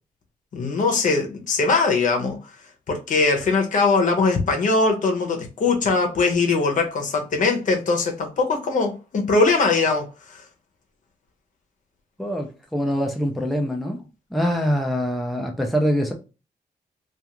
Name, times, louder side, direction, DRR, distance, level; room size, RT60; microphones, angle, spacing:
voice 1, 0.5-2.4 2.9-10.4, left 3 dB, 60° left, 0.7 m, -21 dB
voice 2, 12.2-14.0 14.3-16.1, equal, ahead, 0.4 m, -24 dB
2.3 x 2.3 x 2.9 m
wide cardioid pair, 125°, 15 cm